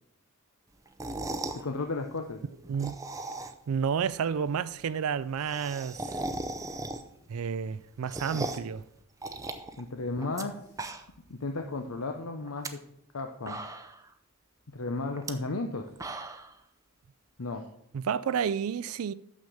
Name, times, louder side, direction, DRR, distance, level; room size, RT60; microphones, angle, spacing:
sound 1, 0.9-1.6 2.6-3.7 4.1-4.2 4.4-4.5 4.7-4.8 5.1-7.3 7.6-8.7 9.2-10.4 10.7-11.3 11.6-11.7 12.4-12.7 13.2-13.3 13.5-14.1 15.1-15.3 15.7-16.5, right 2 dB, 15° right, 0.5 m, -37 dB
voice 1, 1.6-2.4 9.8-10.5 11.3-12.8 13.1-13.6 14.7-15.9 17.4-17.6, left 3 dB, 80° left, 0.8 m, -34 dB
voice 2, 3.7-6.2 7.3-8.8 17.9-19.1, right 7 dB, 80° right, 0.4 m, -30 dB
6.5 x 6.3 x 7.0 m
head